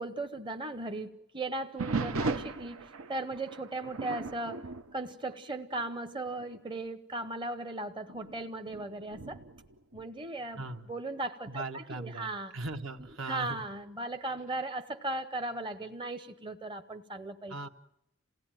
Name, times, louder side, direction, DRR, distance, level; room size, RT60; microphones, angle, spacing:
voice 1, 0.0-4.6 4.9-9.4 9.9-10.6 10.9-12.5 13.3-17.7, right 2 dB, 20° right, 7 dB, 0.8 m, -37 dB
sound 1, 1.8-5.9 6.3-6.6 7.2-7.3 8.1-10.8 12.6-13.1, right 3 dB, 80° right, 1.0 m, -38 dB
voice 2, 10.6-10.9 11.5-13.6 17.5-17.7, right 2 dB, 65° right, 6 dB, 1.3 m, -39 dB
28.5 x 17.5 x 9.0 m, 0.88 s
head